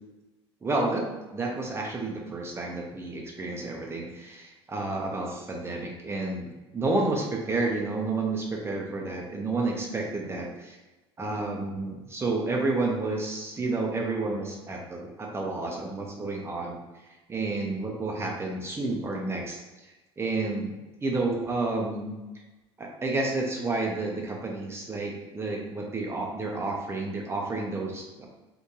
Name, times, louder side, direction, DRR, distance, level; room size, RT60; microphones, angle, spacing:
voice 1, 0.6-1.0 1.3-10.8 11.2-16.8 17.3-19.6 20.2-22.2 22.8-28.3, right 3 dB, 15° right, 0 dB, 0.8 m, -30 dB
2.9 x 2.6 x 3.7 m, 1.1 s
figure-of-eight pair, 70°, 15 cm